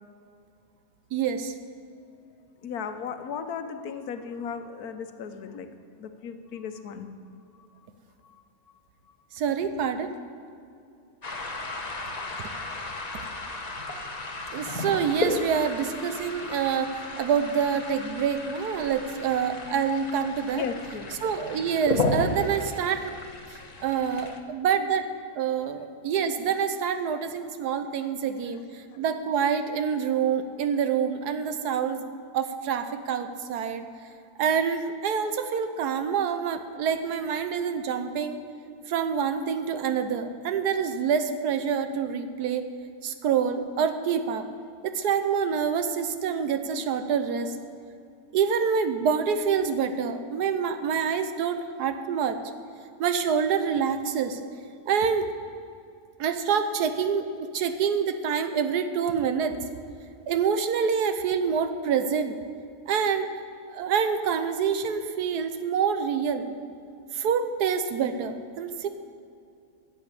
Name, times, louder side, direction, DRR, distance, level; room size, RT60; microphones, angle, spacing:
voice 1, 1.1-1.5 9.3-10.1 14.5-20.6 21.2-23.1 23.8-25.1 25.4-28.6 29.0-32.0 32.3-33.9 34.4-38.4 38.9-42.6 43.0-44.4 44.8-47.5 48.3-52.4 53.0-54.4 54.9-55.3 56.2-59.5 60.3-62.3 62.9-63.3 63.7-66.5 67.1-68.9, right 7 dB, 85° right, 9 dB, 1.4 m, -26 dB
voice 2, 2.6-5.7 6.0-7.1 8.2-8.4 9.1-9.2 20.5-21.1 23.6-24.3 25.6-25.9 28.0-28.1, left 6 dB, 75° left, 8 dB, 1.3 m, -36 dB
sound 1, 11.2-24.4, left 2 dB, 30° left, 1.0 m, -34 dB
11.0 x 7.9 x 8.1 m, 2.4 s
omnidirectional pair, 1.7 m